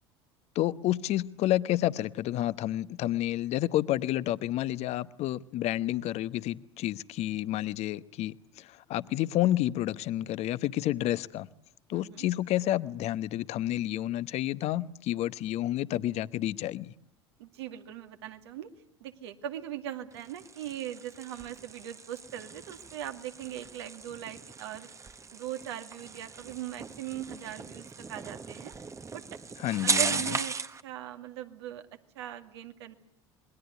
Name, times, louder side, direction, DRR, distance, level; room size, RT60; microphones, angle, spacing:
voice 1, 0.5-11.5 11.9-16.9 29.6-30.4, left 14 dB, 50° left, 1.0 m, -30 dB
voice 2, 11.9-12.2 17.4-18.7 19.0-24.9 25.3-28.7 29.1-29.2 29.8-31.8 32.2-32.9, right 11 dB, 70° right, 2.2 m, -40 dB
sound 1, 20.1-30.8, right 4 dB, 20° right, 1.2 m, -37 dB
27.5 x 22.0 x 8.1 m
figure-of-eight pair, 70°, 14 cm